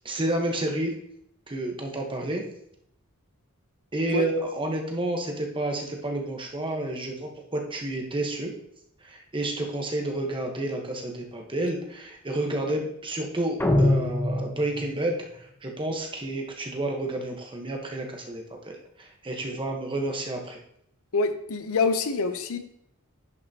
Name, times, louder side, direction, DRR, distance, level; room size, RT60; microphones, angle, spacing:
voice 1, 0.0-0.9 1.5-2.4 3.9-8.5 9.0-20.6, right 1 dB, 25° right, 2 dB, 1.1 m, -30 dB
sound 1, 13.6-15.1, left 1 dB, 10° left, 0.9 m, -23 dB
voice 2, 21.1-22.6, left 4 dB, 70° left, 9 dB, 0.7 m, -26 dB
10.5 x 5.8 x 2.9 m, 0.73 s
head